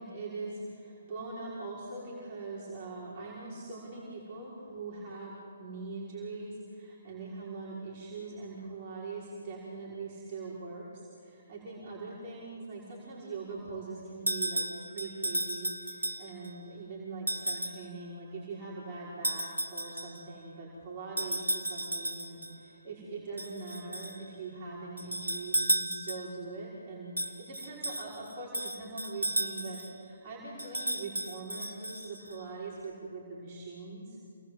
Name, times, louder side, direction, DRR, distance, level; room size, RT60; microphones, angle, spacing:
voice 1, 0.0-5.3 5.6-34.3, right 3 dB, 35° right, -5 dB, 5.7 m, -42 dB
sound 1, 14.3-16.5 17.3-17.9 19.2-20.3 21.2-22.6 23.4-24.2 25.0-26.4 27.2-29.9 30.6-32.4, right 1 dB, 90° right, 2.2 m, -34 dB
28.0 x 20.5 x 8.2 m, 2.5 s
figure-of-eight pair, 135°, 0 cm